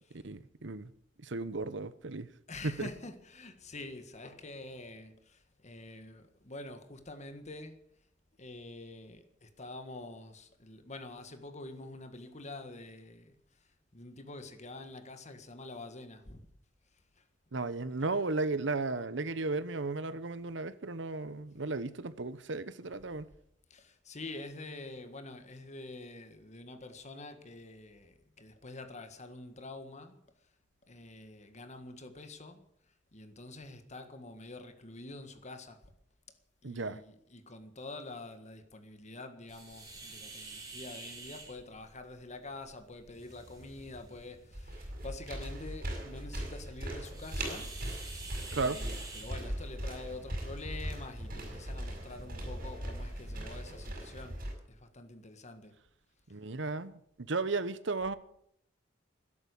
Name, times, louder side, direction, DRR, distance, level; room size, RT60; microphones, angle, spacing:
voice 1, 0.1-0.9 1.2-2.3 2.6-2.9 17.5-23.3 36.6-37.0 48.5-48.8 56.3-58.2, right 3 dB, 70° right, 1.0 m, -35 dB
voice 2, 2.5-7.8 8.4-16.5 16.9-17.3 23.7-30.2 30.9-32.7 33.1-35.9 36.6-47.8 48.4-55.8, left 2 dB, 40° left, 1.7 m, -47 dB
sound 1, 39.5-53.6, right 3 dB, 20° right, 6.6 m, -51 dB
sound 2, 44.5-54.5, right 1 dB, 50° right, 5.5 m, -39 dB
13.0 x 11.0 x 8.4 m
head